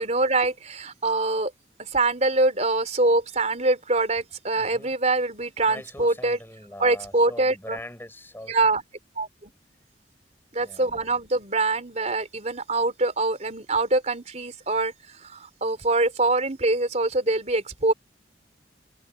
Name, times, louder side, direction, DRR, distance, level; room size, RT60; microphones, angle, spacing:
voice 1, 0.0-1.5 1.8-6.4 6.8-7.8 8.5-8.8 9.2-9.5 10.5-14.9 15.2-17.9, right 2 dB, 40° right, 3.8 m, -24 dB
voice 2, 4.5-4.9 5.7-8.6 10.6-11.0, left 1 dB, 10° left, 6.8 m, -42 dB
head